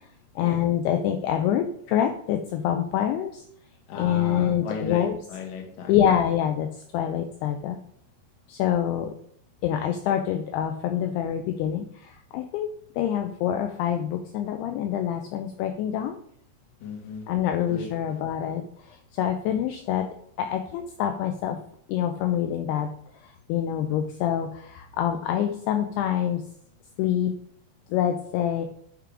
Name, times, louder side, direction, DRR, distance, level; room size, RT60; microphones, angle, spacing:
voice 1, 0.4-3.3 4.0-5.2 5.9-6.7 6.9-7.8 8.5-9.1 9.6-11.8 12.3-12.7 13.0-16.2 17.3-18.6 19.2-20.1 20.4-21.6 21.9-22.9 23.5-26.4 27.0-27.3 27.9-28.7, left 10 dB, 80° left, 5 dB, 2.4 m, -25 dB
voice 2, 3.9-6.2 16.8-17.3 17.7-18.2, left 4 dB, 60° left, 2 dB, 1.9 m, -37 dB
8.9 x 3.7 x 4.8 m, 0.65 s
omnidirectional pair, 5.1 m